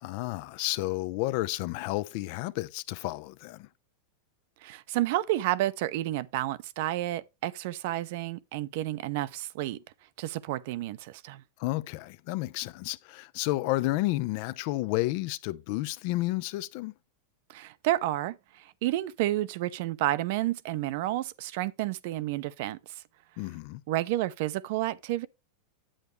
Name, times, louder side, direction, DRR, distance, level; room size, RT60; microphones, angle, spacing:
voice 1, 0.0-3.7 11.6-16.9 23.4-23.8, left 18 dB, 60° left, 0.6 m, -31 dB
voice 2, 4.6-9.8 10.2-11.4 17.5-22.8 23.9-25.3, right 15 dB, 65° right, 0.6 m, -30 dB
8.8 x 8.1 x 3.2 m
hypercardioid pair, 120°, 0 cm